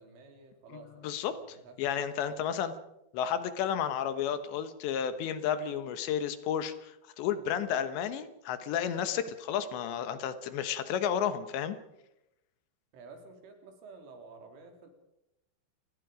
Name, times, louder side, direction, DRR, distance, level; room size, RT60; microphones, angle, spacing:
voice 1, 0.0-2.4 12.9-14.9, right 4 dB, 85° right, 4 dB, 5.8 m, -52 dB
voice 2, 1.0-1.4 1.8-2.7 3.1-11.8, left 8 dB, 75° left, 11 dB, 3.3 m, -32 dB
28.0 x 20.0 x 5.1 m, 0.87 s
omnidirectional pair, 5.5 m